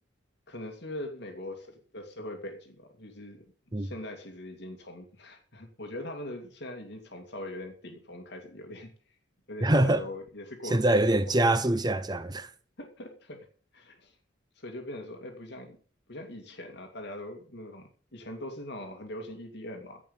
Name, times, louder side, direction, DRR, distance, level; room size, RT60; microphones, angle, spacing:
voice 1, 0.5-3.4 3.8-8.9 9.5-11.1 12.8-13.5 13.7-14.2 14.6-15.8 16.1-20.0, left 1 dB, 65° left, 2.4 m, -41 dB
voice 2, 9.6-10.0 10.6-12.5, right 1 dB, 25° right, 1.0 m, -24 dB
16.0 x 5.4 x 8.8 m
head